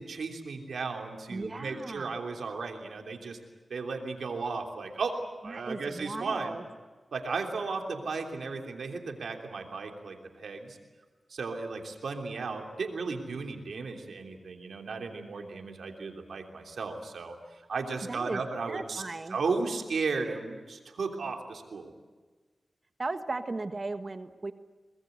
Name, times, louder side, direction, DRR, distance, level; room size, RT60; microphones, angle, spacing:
voice 1, 0.0-3.4 3.7-5.2 5.4-6.6 7.1-10.8 11.3-17.3 17.7-19.0 19.3-21.9, right 4 dB, 90° right, 3 dB, 3.2 m, -35 dB
voice 2, 1.3-2.2 5.5-6.6 18.1-18.4 18.7-19.4 23.0-24.5, right 3 dB, 45° right, 9 dB, 1.4 m, -36 dB
24.5 x 20.5 x 8.1 m, 1.4 s
cardioid pair, 50°, 0 cm